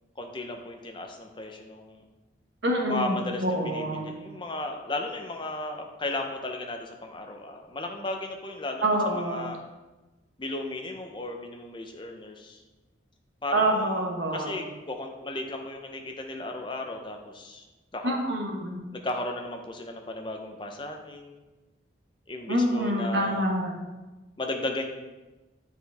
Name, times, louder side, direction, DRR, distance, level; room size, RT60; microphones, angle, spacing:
voice 1, 0.2-2.0 2.9-9.6 10.4-12.6 13.4-13.9 14.3-17.6 17.9-18.2 18.9-21.4 22.3-23.4 24.4-24.9, left 2 dB, 25° left, 3 dB, 0.7 m, -35 dB
voice 2, 2.6-4.1 8.8-9.5 13.5-14.5 18.0-18.8 22.5-23.7, right 1 dB, 70° right, 1 dB, 1.0 m, -26 dB
8.8 x 4.5 x 3.4 m, 1.2 s
head